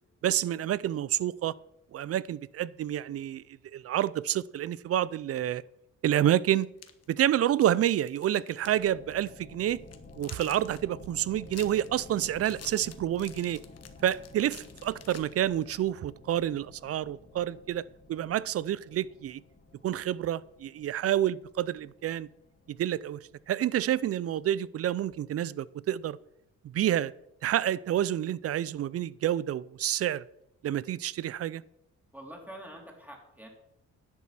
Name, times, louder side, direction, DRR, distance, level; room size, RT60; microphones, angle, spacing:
voice 1, 0.2-1.6 1.9-3.4 3.7-5.6 6.0-6.7 7.1-9.8 10.2-13.6 14.0-19.4 19.8-22.3 22.7-23.2 23.5-26.2 26.6-27.1 27.4-30.2 30.6-31.6, right 11 dB, 50° right, 0.5 m, -28 dB
sound 1, 6.6-8.9 9.1-9.3 9.7-15.8, left 8 dB, 55° left, 1.2 m, -50 dB
sound 2, 8.6-24.0, left 3 dB, 30° left, 1.6 m, -52 dB
voice 2, 32.1-33.5, right 1 dB, 5° right, 3.4 m, -45 dB
10.5 x 7.4 x 5.9 m
cardioid pair, 90°, 30 cm